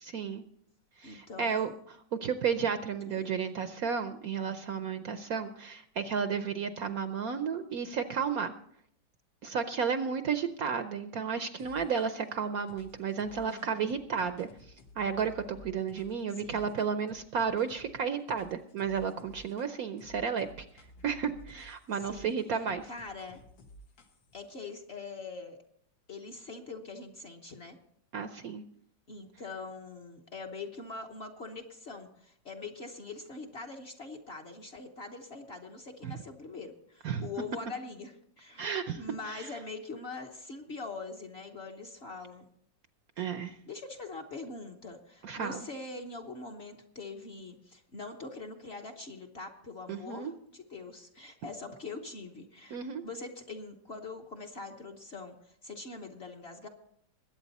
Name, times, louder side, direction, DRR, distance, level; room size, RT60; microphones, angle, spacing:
voice 1, 0.0-0.4 1.0-8.5 9.4-20.7 21.0-22.9 28.1-28.6 36.0-36.1 37.0-37.3 38.6-39.5 43.2-43.6 45.2-45.6 49.9-50.3 52.7-53.0, right 6 dB, 65° right, 10 dB, 0.9 m, -33 dB
voice 2, 1.0-1.7 3.0-3.2 13.3-14.0 16.3-16.8 22.0-22.3 22.8-23.4 24.3-25.6 26.1-27.8 29.1-42.4 43.7-52.8 53.0-56.7, left 3 dB, 40° left, 3 dB, 1.1 m, -43 dB
sound 1, 11.6-12.3 12.7-17.9 18.3-19.7 20.0-24.4, equal, 85° left, 2.1 m, -54 dB
21.5 x 8.7 x 4.1 m, 0.68 s
omnidirectional pair, 2.0 m